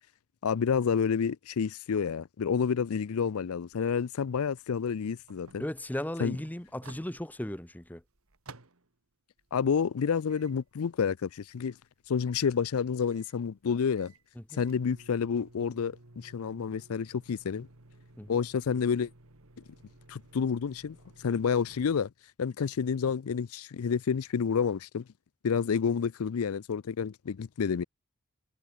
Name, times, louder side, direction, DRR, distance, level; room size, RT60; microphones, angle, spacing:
voice 1, 0.4-5.6 6.2-6.4 9.5-11.8 12.1-14.1 14.5-17.7 18.3-19.1 20.1-22.1 22.4-25.0 25.4-27.8, left 6 dB, 70° left, 0.4 m, -29 dB
sound 1, 3.4-9.0 9.4-22.0, right 2 dB, 65° right, 2.1 m, -56 dB
voice 2, 5.6-8.0 14.4-14.6 18.2-18.4, left 1 dB, 5° left, 0.8 m, -36 dB
head